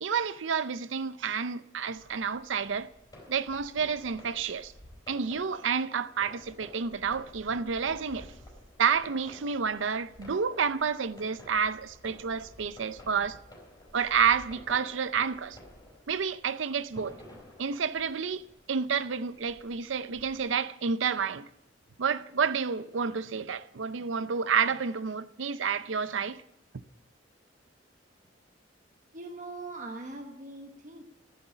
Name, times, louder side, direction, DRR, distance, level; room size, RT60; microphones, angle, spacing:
voice 1, 0.0-2.9 3.3-4.7 5.1-8.3 8.8-13.4 13.9-15.6 16.1-17.2 17.6-21.5 22.0-26.4, right 6 dB, 85° right, 0.6 m, -29 dB
sound 1, 1.9-20.5, left 1 dB, 20° left, 4.0 m, -52 dB
voice 2, 29.1-31.0, right 2 dB, 45° right, 1.2 m, -41 dB
14.5 x 7.8 x 9.9 m
head